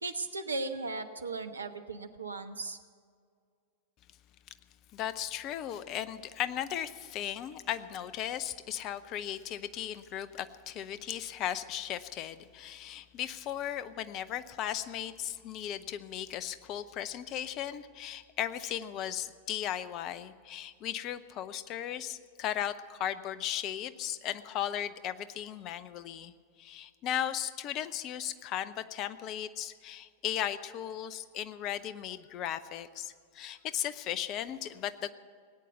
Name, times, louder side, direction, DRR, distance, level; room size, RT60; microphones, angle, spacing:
voice 1, 0.0-2.8, right 3 dB, 75° right, 8 dB, 1.0 m, -37 dB
voice 2, 4.9-26.3 26.6-35.1, left 10 dB, 35° left, 13 dB, 0.7 m, -36 dB
18.5 x 9.2 x 8.2 m, 2.1 s
figure-of-eight pair, 90°, 0 cm